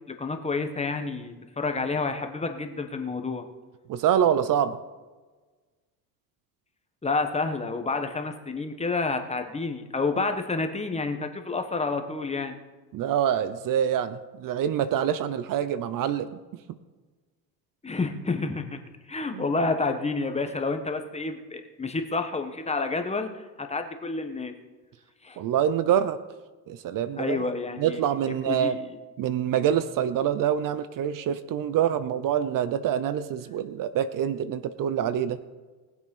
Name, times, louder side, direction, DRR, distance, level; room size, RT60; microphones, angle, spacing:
voice 1, 0.1-3.4 7.0-12.5 17.8-18.8 19.1-24.5 25.2-25.4 27.2-28.0 28.5-29.0, left 3 dB, 15° left, 6 dB, 1.4 m, -29 dB
voice 2, 3.9-4.8 12.9-16.4 19.3-19.4 25.4-26.2 26.7-27.4 27.8-28.8 29.2-35.4, right 9 dB, 55° right, 14 dB, 0.8 m, -26 dB
19.5 x 7.6 x 5.5 m, 1.3 s
cardioid pair, 110°, 39 cm